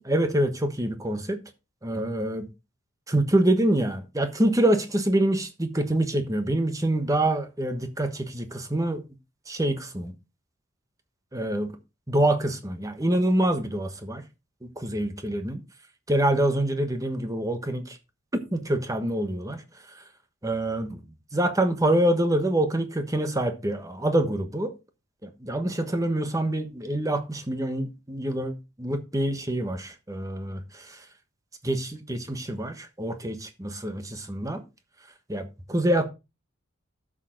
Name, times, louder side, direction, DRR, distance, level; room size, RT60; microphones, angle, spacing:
voice 1, 0.1-1.4 1.8-2.5 3.1-9.0 9.5-10.1 11.3-11.7 12.1-14.2 14.8-15.6 16.1-18.0 18.5-19.6 20.4-21.0 21.3-24.7 25.2-30.6 31.6-34.6 35.3-36.1, right 1 dB, 15° right, 1.2 m, -26 dB
12.5 x 6.4 x 3.9 m
head